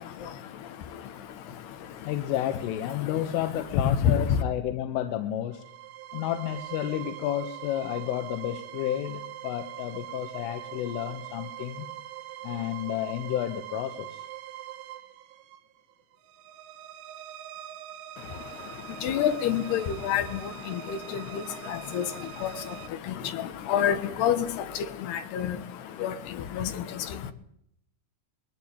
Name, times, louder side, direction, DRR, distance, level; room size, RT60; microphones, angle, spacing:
voice 1, 0.0-2.3 2.9-4.4 18.2-27.3, left 9 dB, 65° left, 10 dB, 3.2 m, -30 dB
voice 2, 2.1-5.6 6.1-11.9 12.4-14.2, left 12 dB, 90° left, 7 dB, 3.7 m, -31 dB
sound 1, 5.5-22.9, right 12 dB, 85° right, 3.9 m, -43 dB
22.0 x 15.0 x 9.8 m, 0.73 s
omnidirectional pair, 5.6 m